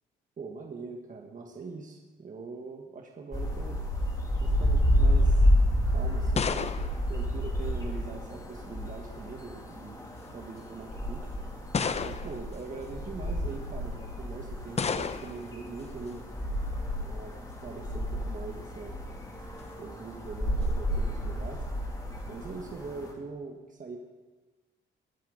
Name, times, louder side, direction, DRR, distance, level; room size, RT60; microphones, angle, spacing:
voice 1, 0.4-3.8 4.4-5.5 5.9-6.7 7.1-10.0 10.3-11.3 12.0-16.2 17.0-19.0 19.8-21.6 22.2-24.0, right 4 dB, 40° right, 1 dB, 1.5 m, -42 dB
sound 1, 3.3-23.1, equal, 20° left, 2.8 m, -30 dB
sound 2, 5.8-8.1 9.1-9.6 10.4-10.5 11.7-12.5 14.8-15.5, left 5 dB, 35° left, 0.7 m, -32 dB
21.0 x 8.5 x 4.0 m, 1.2 s
cardioid pair, 90°, 20 cm